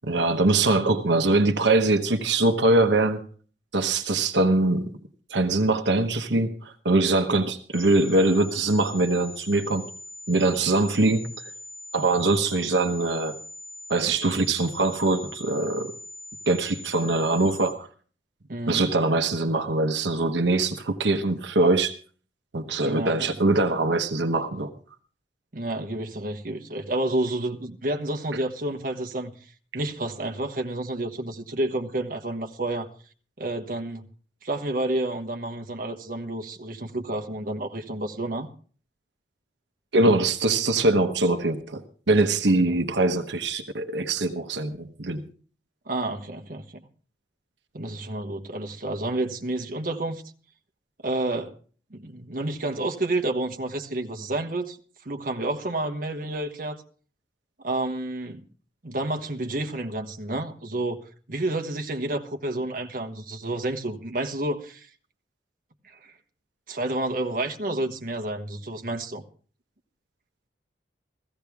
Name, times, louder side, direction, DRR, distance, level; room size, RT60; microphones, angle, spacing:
voice 1, 0.0-3.2 3.7-5.0 5.3-9.9 10.3-11.3 11.9-13.4 13.9-15.9 16.5-17.9 18.7-21.9 22.5-24.7 39.9-45.3, right 2 dB, 75° right, 1.1 m, -23 dB
sound 1, 7.7-17.7, left 2 dB, 30° left, 7.2 m, -42 dB
voice 2, 18.5-18.9 22.8-23.4 25.5-29.3 29.7-32.9 33.4-34.1 34.4-38.5 42.5-42.6 45.9-46.8 47.7-50.2 51.0-51.6 51.9-54.8 55.0-56.8 57.6-58.4 58.8-61.0 61.3-64.9 65.8-66.1 66.7-69.2, right 2 dB, 50° right, 1.2 m, -30 dB
15.5 x 15.5 x 3.5 m
head